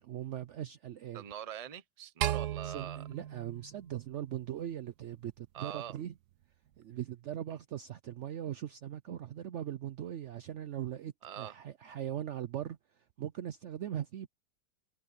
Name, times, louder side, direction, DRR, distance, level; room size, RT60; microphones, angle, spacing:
voice 1, 0.0-1.2 2.6-6.1 6.8-14.3, right 11 dB, 85° right, 0.6 m, -40 dB
voice 2, 1.1-3.0 5.5-6.0 11.2-11.5, right 10 dB, 45° right, 0.4 m, -43 dB
sound 1, 2.2-4.6, right 12 dB, 70° right, 1.3 m, -36 dB
omnidirectional pair, 1.9 m